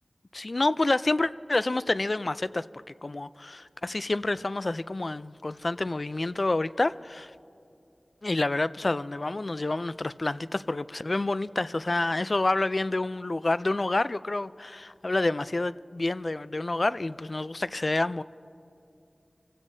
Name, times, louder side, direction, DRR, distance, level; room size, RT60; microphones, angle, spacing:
voice 1, 0.3-7.3 8.2-18.2, left 2 dB, 50° left, 0.3 m, -28 dB
27.5 x 16.0 x 2.7 m
wide cardioid pair, 70°, 0 cm